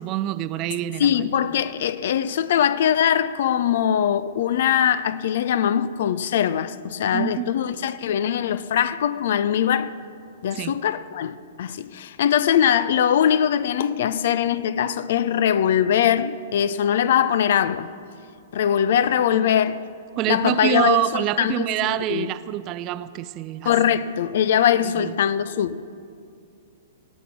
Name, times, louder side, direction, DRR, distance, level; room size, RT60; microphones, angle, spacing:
voice 1, 0.0-1.2 7.1-7.6 10.5-10.7 19.3-19.5 20.2-23.7 24.8-25.1, right 14 dB, 30° right, 0.4 m, -26 dB
voice 2, 1.0-9.9 10.4-17.9 18.5-19.8 20.3-22.3 23.6-25.8, left 9 dB, 55° left, 0.5 m, -22 dB
18.5 x 8.2 x 6.2 m
figure-of-eight pair, 105°, 0 cm